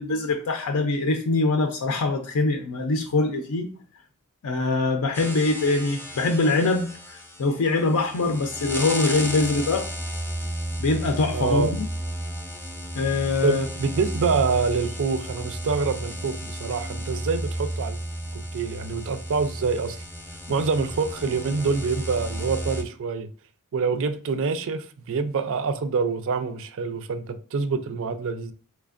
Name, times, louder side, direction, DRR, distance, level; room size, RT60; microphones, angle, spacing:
voice 1, 0.0-3.7 4.4-9.9 10.8-11.9 12.9-13.7, left 3 dB, 75° left, 0.5 m, -23 dB
sound 1, 5.1-22.8, equal, 10° left, 0.5 m, -33 dB
voice 2, 11.3-11.7 13.4-18.0 18.3-20.0 20.5-23.3 23.7-28.5, right 4 dB, 60° right, 0.4 m, -26 dB
3.2 x 3.2 x 2.4 m
head